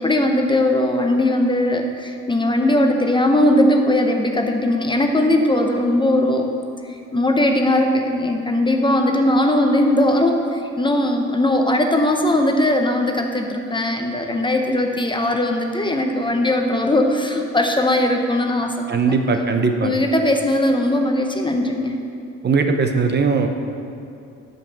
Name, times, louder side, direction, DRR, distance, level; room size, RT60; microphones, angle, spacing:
voice 1, 0.0-6.5 6.9-19.1 19.8-22.0, left 1 dB, 15° left, 4 dB, 0.8 m, -19 dB
voice 2, 18.9-19.9 22.4-23.5, right 4 dB, 35° right, 5 dB, 0.8 m, -19 dB
11.0 x 5.4 x 7.3 m, 2.5 s
cardioid pair, 120°, 29 cm